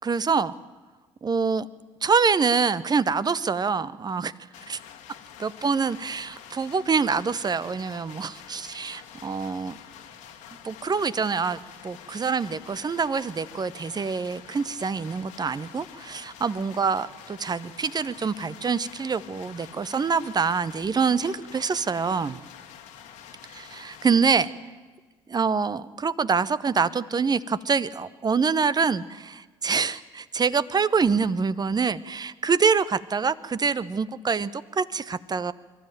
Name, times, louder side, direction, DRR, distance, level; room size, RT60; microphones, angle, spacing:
voice 1, 0.0-0.5 1.2-1.7 2.0-4.3 4.7-4.8 5.4-9.7 10.6-22.4 23.6-24.5 25.3-35.5, right 5 dB, 30° right, 17 dB, 0.9 m, -25 dB
sound 1, 4.5-24.5, left 9 dB, 70° left, 1.9 m, -47 dB
23.5 x 12.5 x 9.1 m, 1.4 s
hypercardioid pair, 55°, 13 cm